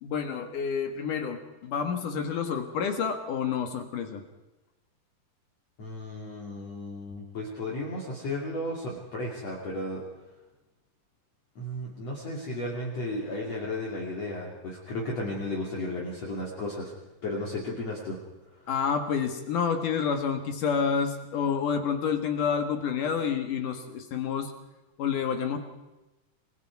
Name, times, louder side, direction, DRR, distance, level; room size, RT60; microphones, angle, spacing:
voice 1, 0.0-4.2 18.7-24.5 25.0-25.6, left 6 dB, 60° left, 6 dB, 2.9 m, -29 dB
voice 2, 5.8-10.0 11.6-16.9 17.2-18.2 18.6-18.7, left 1 dB, 40° left, -3 dB, 3.7 m, -34 dB
29.0 x 22.0 x 4.8 m, 1.0 s
omnidirectional pair, 4.7 m